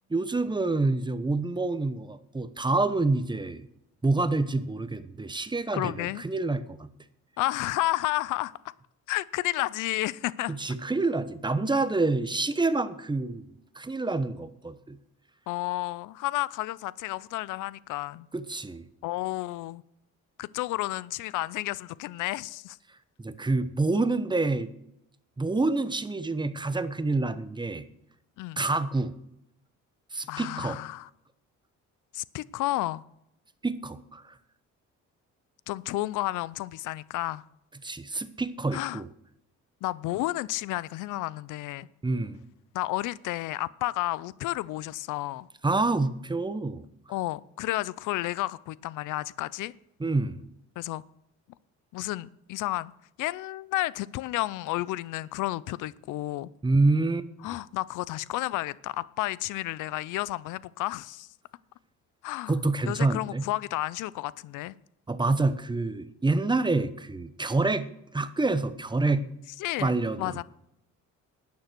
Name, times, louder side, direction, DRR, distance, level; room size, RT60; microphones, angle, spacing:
voice 1, 0.1-3.7 4.0-6.9 10.5-15.0 18.3-18.9 23.2-24.7 25.4-27.9 28.6-29.2 30.1-30.8 33.6-34.3 37.8-39.1 42.0-42.4 45.6-46.8 50.0-50.4 56.6-57.3 62.5-63.4 65.1-67.9 68.1-69.2 69.8-70.4, right 3 dB, 15° right, 0.9 m, -27 dB
voice 2, 5.7-6.2 7.4-8.5 9.1-10.6 15.5-18.3 19.0-19.8 20.4-22.8 28.4-28.7 30.3-31.1 32.1-33.0 35.7-37.4 38.7-39.0 39.8-41.9 42.7-45.5 47.1-49.7 50.8-51.0 51.9-52.9 53.2-56.5 57.4-61.3 62.2-62.5 62.9-64.8 69.6-70.4, left 17 dB, 90° left, 0.5 m, -31 dB
11.5 x 9.5 x 6.0 m
cardioid pair, 90°, 30 cm